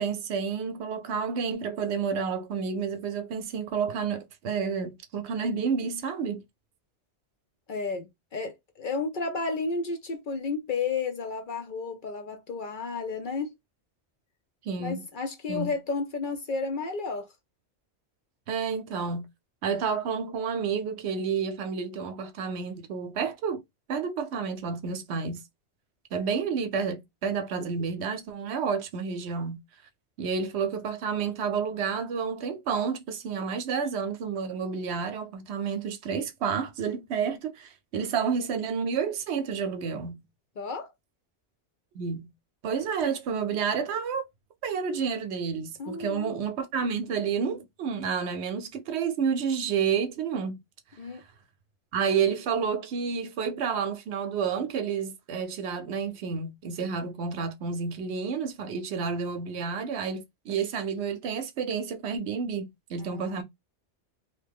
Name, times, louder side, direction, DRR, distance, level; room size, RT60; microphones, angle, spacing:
voice 1, 0.0-6.4 14.6-15.0 15.5-15.7 18.5-19.3 19.6-23.6 23.9-25.4 26.1-29.6 30.2-40.2 41.9-42.3 42.6-44.3 44.6-50.6 51.9-63.4, right 6 dB, 75° right, 0.8 m, -30 dB
voice 2, 7.7-13.5 14.8-17.3 40.6-40.9 45.8-46.4 51.0-51.2 63.0-63.4, left 4 dB, 55° left, 0.6 m, -32 dB
2.8 x 2.1 x 3.3 m
omnidirectional pair, 1.2 m